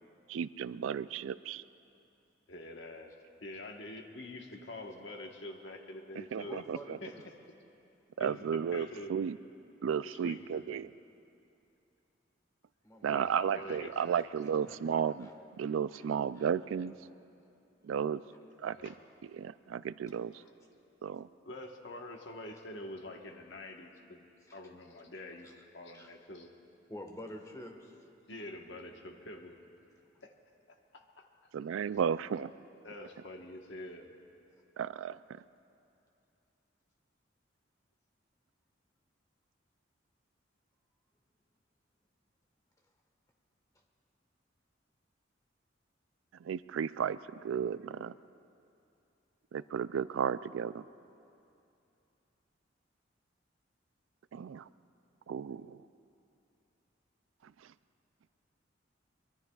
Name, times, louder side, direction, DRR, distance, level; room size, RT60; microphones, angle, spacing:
voice 1, 0.3-1.6 6.1-7.0 8.2-9.4 9.8-10.9 13.0-15.3 15.6-16.9 17.8-18.2 18.6-18.9 19.2-20.4 21.0-21.3 31.5-32.5 34.8-35.4 46.4-48.2 49.5-50.8 54.3-54.7 55.3-55.8 57.4-57.5, right 7 dB, 90° right, 15 dB, 0.3 m, -34 dB
voice 2, 2.5-3.2 3.4-6.7 7.0-7.3 8.2-9.1 10.0-10.8 13.1-14.4 18.6-19.0 21.4-26.5 28.3-29.6 30.2-30.3 30.7-31.3 32.8-34.1, left 1 dB, 65° left, 2 dB, 1.2 m, -46 dB
voice 3, 6.4-7.3 12.8-13.3 13.7-14.0 14.7-14.9 15.2-15.3 15.9-16.0 16.4-16.5 20.3-20.5 24.5-24.6 25.4-25.5 25.9-26.1 26.9-27.9 30.1-30.2, left 1 dB, 15° left, 2 dB, 1.3 m, -48 dB
23.5 x 23.0 x 2.3 m, 2.7 s
head